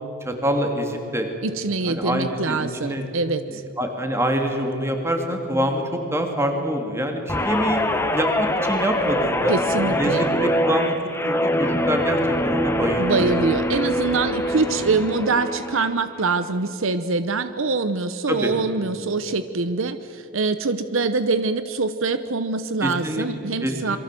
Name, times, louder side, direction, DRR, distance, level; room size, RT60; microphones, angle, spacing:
voice 1, 0.2-1.3 1.9-3.0 3.5-7.8 8.1-9.6 9.8-10.9 11.2-13.5 14.5-14.6 18.3-18.5 22.8-23.3 23.6-24.0, equal, 10° right, 3 dB, 2.8 m, -25 dB
voice 2, 1.4-3.6 9.5-10.2 13.0-24.0, right 3 dB, 65° right, 11 dB, 0.8 m, -24 dB
Guitar, 7.3-15.9 16.3-16.6, equal, 10° left, 1.4 m, -24 dB
27.5 x 23.5 x 7.7 m, 2.9 s
head